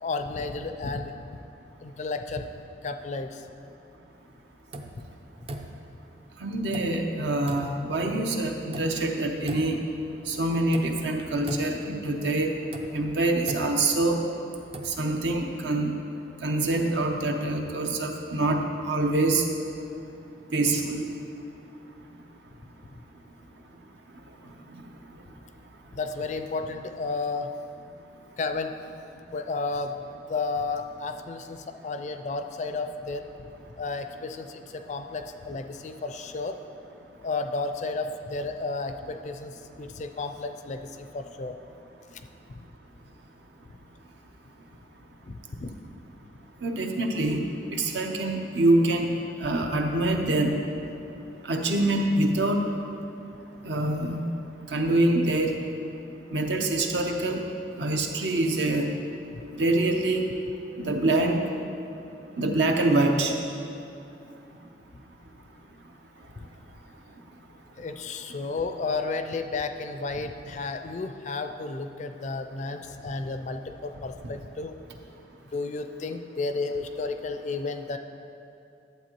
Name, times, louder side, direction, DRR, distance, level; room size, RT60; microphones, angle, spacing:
voice 1, 0.0-1.1 1.8-2.5 2.8-3.4 25.9-27.5 28.4-28.7 29.3-30.0 30.3-33.3 33.8-36.6 37.2-41.5 45.2-45.7 67.8-74.8 75.5-78.0, left 3 dB, 40° left, 7 dB, 0.4 m, -32 dB
sound 1, 4.7-5.1 5.5-6.0 6.7-7.1 7.5-7.9 8.7-9.1 9.5-10.0 10.7-11.1 11.5-12.0 12.7-14.2 14.6-15.0, right 1 dB, 30° right, 0.4 m, -39 dB
voice 2, 6.4-9.8 10.3-12.6 12.9-14.2 14.8-16.0 16.4-19.4 20.5-21.0 24.7-24.8 46.6-47.4 47.7-49.1 49.4-50.6 51.4-52.7 53.6-54.3 54.7-55.6 56.3-57.4 57.8-58.9 59.5-60.2 60.8-61.5 62.4-63.3, right 2 dB, 70° right, 3 dB, 0.7 m, -25 dB
11.5 x 7.7 x 3.0 m, 2.6 s
head